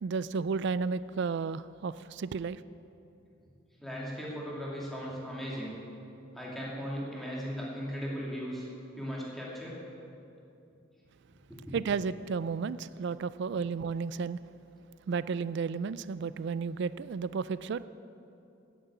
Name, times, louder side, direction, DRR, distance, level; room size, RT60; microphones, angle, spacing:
voice 1, 0.0-2.6 11.7-14.4 15.1-17.9, right 5 dB, 60° right, 16 dB, 0.3 m, -33 dB
voice 2, 3.8-5.8 6.3-8.7 8.9-9.8 11.5-11.7, equal, ahead, -5 dB, 2.5 m, -37 dB
10.5 x 9.7 x 8.2 m, 2.7 s
head